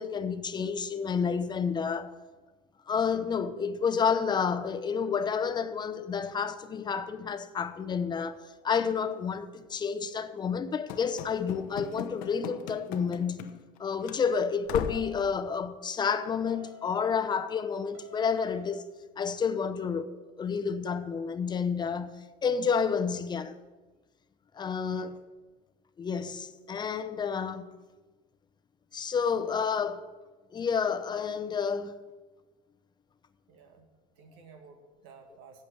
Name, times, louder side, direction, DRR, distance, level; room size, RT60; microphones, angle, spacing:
voice 1, 0.0-2.2 2.9-8.4 8.6-13.5 13.8-18.9 19.2-23.6 24.5-25.2 26.0-27.7 28.9-30.1 30.5-32.0, left 6 dB, 30° left, 0.7 m, -30 dB
Run / Slam, 10.9-13.8 14.0-14.2 14.7-15.2, left 9 dB, 75° left, 0.8 m, -38 dB
sound 1, 14.9-15.3 16.2-17.6 17.9-18.8, equal, 65° right, 2.5 m, -49 dB
voice 2, 33.5-33.9 34.2-35.7, right 5 dB, 85° right, 1.9 m, -53 dB
8.4 x 7.7 x 8.7 m
supercardioid pair, 110°, 15 cm